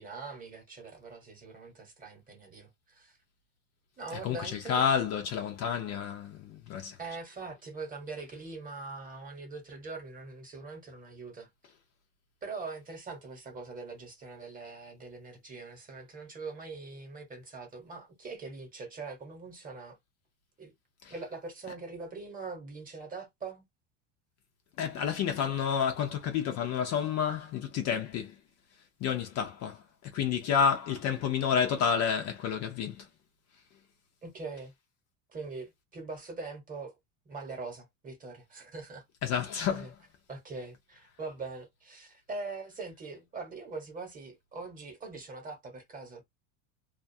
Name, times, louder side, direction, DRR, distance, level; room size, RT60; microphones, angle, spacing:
voice 1, 0.0-3.2 4.0-4.8 7.0-11.5 12.4-20.0 20.6-20.7 21.1-23.6 34.2-34.7 35.3-37.0 37.2-39.0 39.7-39.9 40.3-46.2, right 3 dB, 20° right, 1.0 m, -42 dB
voice 2, 4.1-7.0 21.0-21.1 24.8-28.4 29.0-33.1 39.2-39.9, left 7 dB, 40° left, 0.5 m, -30 dB
2.5 x 2.4 x 2.5 m
cardioid pair, 150°, 43 cm